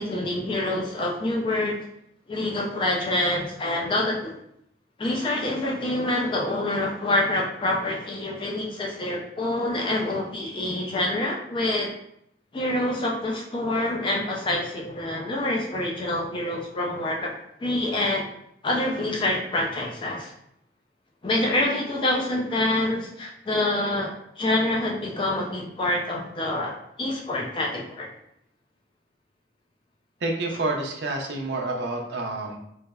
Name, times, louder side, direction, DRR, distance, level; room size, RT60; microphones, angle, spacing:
voice 1, 0.0-1.7 2.3-4.3 5.0-11.9 12.5-17.3 17.6-18.3 18.6-20.3 21.2-26.7 27.0-28.1, left 1 dB, 25° left, -1 dB, 0.3 m, -26 dB
voice 2, 30.2-32.6, right 2 dB, 60° right, 1 dB, 0.4 m, -28 dB
3.1 x 2.0 x 2.2 m, 0.75 s
head